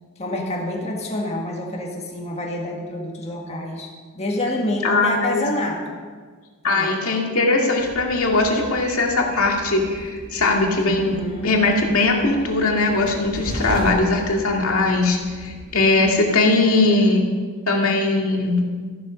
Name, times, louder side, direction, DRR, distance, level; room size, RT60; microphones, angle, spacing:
voice 1, 0.2-3.9 4.1-5.9 6.6-7.0 11.0-11.5, left 1 dB, 30° left, -1 dB, 1.7 m, -27 dB
voice 2, 4.8-5.4 6.6-11.2 11.4-17.3 17.7-18.6, left 2 dB, 70° left, 0 dB, 2.3 m, -20 dB
Train, 7.8-16.1, right 1 dB, 45° right, 1.6 m, -36 dB
14.0 x 11.5 x 5.2 m, 1.5 s
head